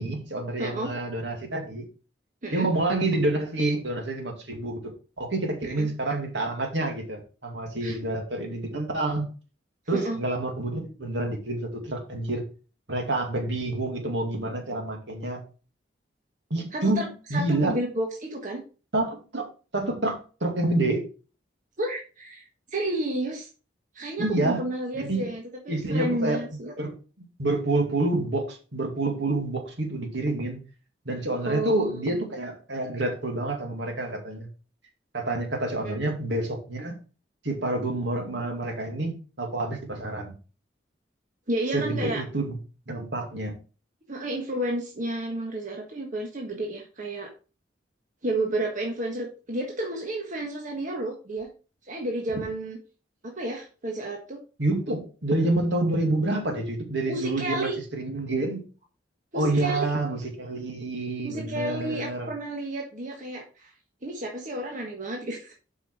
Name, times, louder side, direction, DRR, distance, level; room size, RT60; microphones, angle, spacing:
voice 1, 0.0-1.9 2.5-4.9 5.2-9.3 9.9-12.4 12.9-15.4 16.5-17.7 18.9-19.5 19.7-21.0 24.2-24.6 24.9-25.3 25.7-26.4 26.8-30.6 31.1-34.5 35.1-37.0 37.4-40.3 41.7-42.6 42.9-43.5 54.6-58.6 59.3-62.3, right 2 dB, 75° right, 2 dB, 2.5 m, -28 dB
voice 2, 0.6-0.9 2.4-2.7 5.6-5.9 7.8-8.0 9.9-10.2 16.7-18.6 21.8-23.5 23.9-26.7 31.5-32.2 35.8-36.0 41.5-42.2 44.1-47.3 48.2-51.5 51.9-52.8 53.2-54.4 57.0-57.8 59.3-59.9 61.2-63.7 64.0-65.5, right 1 dB, 45° right, 0 dB, 1.5 m, -31 dB
7.7 x 5.5 x 4.8 m, 0.35 s
head